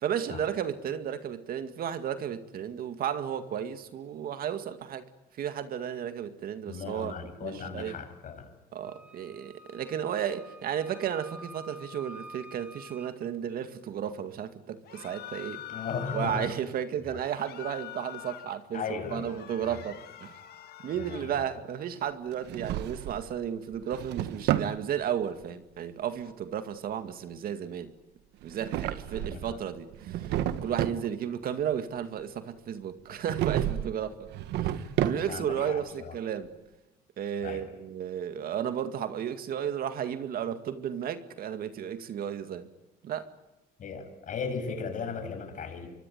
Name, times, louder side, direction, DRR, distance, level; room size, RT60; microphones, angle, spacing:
voice 1, 0.0-5.1 5.4-7.1 7.4-8.0 8.7-15.7 16.1-20.4 20.8-27.9 28.4-34.3 34.6-36.5 37.2-42.7 43.0-43.3, right 9 dB, 60° right, 2.1 m, -33 dB
voice 2, 6.6-8.5 15.7-16.5 17.1-17.2 18.7-19.8 20.9-21.4 29.1-29.6 35.3-36.1 37.4-37.7 43.8-45.9, left 5 dB, 50° left, 7.4 m, -37 dB
Wind instrument woodwind instrument, 8.8-13.2, right 1 dB, 5° right, 2.2 m, -49 dB
sound 1, 14.8-16.6 17.2-18.6 19.0-21.3, left 12 dB, 70° left, 2.5 m, -44 dB
Drawer open or close, 22.3-23.3 23.7-24.8 28.4-29.6 29.9-31.1 33.2-33.9 34.3-35.5, right 11 dB, 80° right, 1.4 m, -31 dB
25.0 x 24.0 x 9.5 m
cardioid pair, 110°, 17 cm